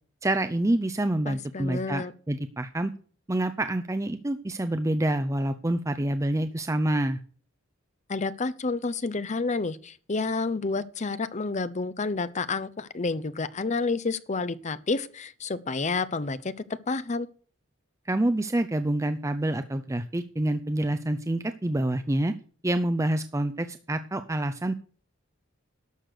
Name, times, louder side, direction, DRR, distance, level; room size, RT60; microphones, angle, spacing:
voice 1, 0.2-2.9 3.3-7.2 18.1-22.3 22.6-24.7, right 1 dB, 15° right, 0.5 m, -27 dB
voice 2, 1.3-2.1 8.1-16.5 16.9-17.3, left 3 dB, 35° left, 0.7 m, -29 dB
12.0 x 6.6 x 6.6 m
head